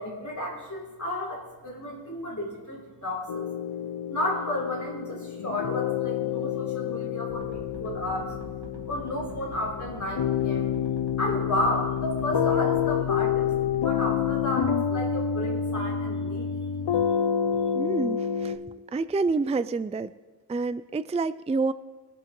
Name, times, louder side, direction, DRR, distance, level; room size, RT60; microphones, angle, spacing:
voice 1, 0.0-3.5 4.1-8.3 8.9-10.6 11.2-13.5 13.8-16.5, left 1 dB, 45° left, -2 dB, 3.7 m, -32 dB
sound 1, 3.3-18.6, left 8 dB, 85° left, 0.6 m, -28 dB
sound 2, 7.3-14.4, right 2 dB, 65° right, 2.2 m, -44 dB
voice 2, 17.7-18.6 18.9-20.1 20.5-21.7, right 3 dB, 15° right, 15 dB, 0.3 m, -28 dB
22.0 x 7.6 x 3.8 m, 1.3 s
wide cardioid pair, 45°, 41 cm